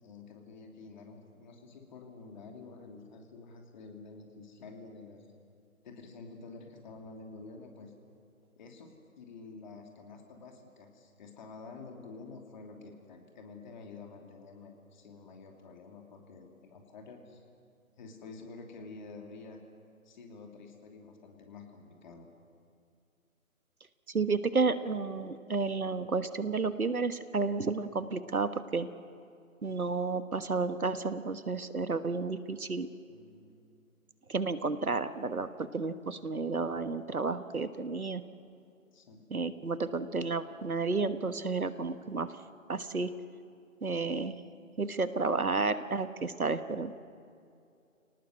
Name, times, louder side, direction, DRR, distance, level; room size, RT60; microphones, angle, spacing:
voice 1, 0.0-5.3 5.8-7.9 8.6-8.9 9.2-17.4 18.0-19.6 20.0-22.3 32.7-32.8 33.1-33.6 38.9-39.2, left 4 dB, 30° left, 2 dB, 2.9 m, -49 dB
voice 2, 24.1-28.9 29.6-32.9 34.3-38.2 39.3-42.3 42.7-43.1 43.8-44.4 44.8-46.9, right 4 dB, 90° right, 12 dB, 1.4 m, -31 dB
29.0 x 18.5 x 7.8 m, 2.5 s
figure-of-eight pair, 150°, 42 cm